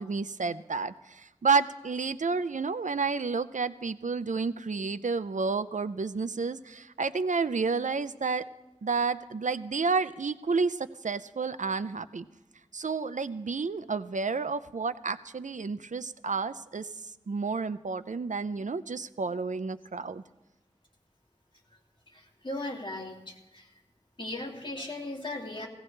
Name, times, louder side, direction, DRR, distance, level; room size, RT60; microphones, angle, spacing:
voice 1, 0.0-8.4 8.8-12.3 12.7-16.9 17.3-20.2, right 4 dB, 80° right, 13 dB, 0.5 m, -30 dB
voice 2, 22.1-23.7 24.2-25.7, left 1 dB, 40° left, -1 dB, 2.5 m, -37 dB
17.0 x 17.0 x 3.3 m, 0.99 s
wide cardioid pair, 40°, 13 cm